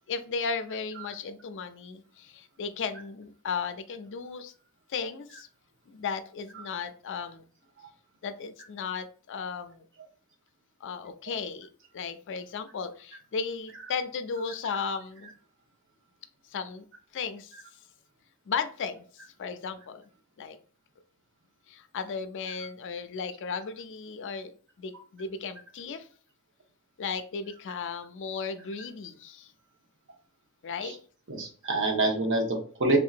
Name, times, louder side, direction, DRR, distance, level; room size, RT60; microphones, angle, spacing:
voice 1, 0.1-4.5 4.9-5.5 5.9-7.4 8.2-9.8 10.8-11.7 11.9-15.3 16.5-16.9 17.1-17.5 18.5-19.0 19.4-20.0 20.4-20.6 21.7-24.5 24.8-26.1 27.0-29.5 30.6-30.9, left 5 dB, 55° left, 10 dB, 0.4 m, -35 dB
voice 2, 14.6-15.0 17.5-17.6 30.8-31.0 31.3-33.0, right 2 dB, 55° right, 2 dB, 1.0 m, -28 dB
3.5 x 2.8 x 2.5 m, 0.43 s
head